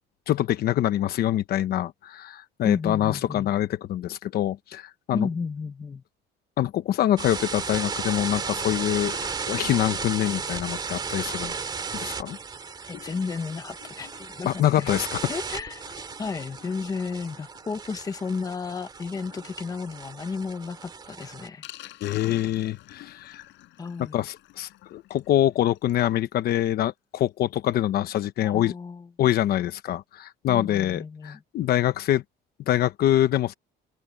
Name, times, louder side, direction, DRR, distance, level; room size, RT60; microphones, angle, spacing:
voice 1, 0.3-5.3 6.6-9.1 9.5-11.5 11.9-12.4 14.5-15.2 22.0-23.4 24.1-28.7 29.2-32.2 32.7-33.5, left 12 dB, 50° left, 1.0 m, -25 dB
voice 2, 2.6-3.5 5.1-6.0 12.9-14.9 15.3-21.7 23.8-24.2 28.4-29.1 30.5-31.4, left 5 dB, 20° left, 1.1 m, -33 dB
sound 1, 7.2-21.5, right 5 dB, 20° right, 2.7 m, -35 dB
Sink (filling or washing), 8.2-26.2 26.6-26.7 26.8-26.9 27.3-27.4, left 16 dB, 75° left, 6.3 m, -50 dB
open air
cardioid pair, 180°, 20 cm